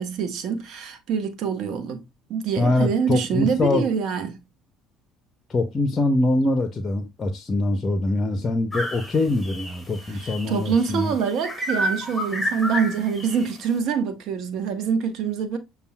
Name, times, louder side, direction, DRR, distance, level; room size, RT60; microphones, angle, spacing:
voice 1, 0.0-2.0 2.3-4.4 10.1-15.6, right 6 dB, 60° right, 0.8 m, -25 dB
voice 2, 2.6-3.9 5.5-11.1, left 2 dB, 30° left, 0.6 m, -23 dB
sound 1, 8.7-10.9 11.4-13.5, equal, 5° left, 1.4 m, -29 dB
6.7 x 2.3 x 2.2 m
hypercardioid pair, 60°, 0 cm